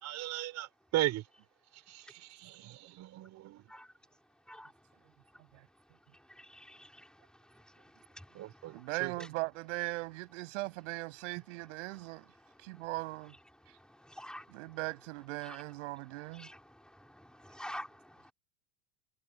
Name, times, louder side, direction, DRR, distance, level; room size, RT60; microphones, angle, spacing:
voice 1, 0.0-1.2 1.9-3.6 8.3-9.1, right 15 dB, 45° right, 5.2 m, -37 dB
voice 2, 6.5-6.9 14.2-14.4 16.4-16.6 17.4-17.9, equal, ahead, 4.4 m, -44 dB
voice 3, 8.7-12.3 12.6-13.3 14.5-16.5, right 22 dB, 70° right, 6.6 m, -39 dB
supercardioid pair, 110°, 38 cm